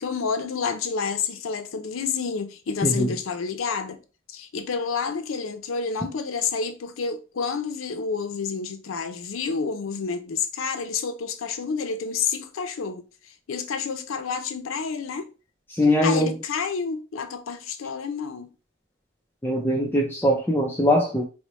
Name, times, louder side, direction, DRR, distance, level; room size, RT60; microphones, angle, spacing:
voice 1, 0.0-4.0 4.3-13.0 13.5-15.3 16.0-18.5, left 5 dB, 85° left, 0.5 m, -29 dB
voice 2, 2.8-3.1 15.8-16.3 19.4-21.2, left 1 dB, 10° left, 0.4 m, -21 dB
4.3 x 2.0 x 3.0 m
head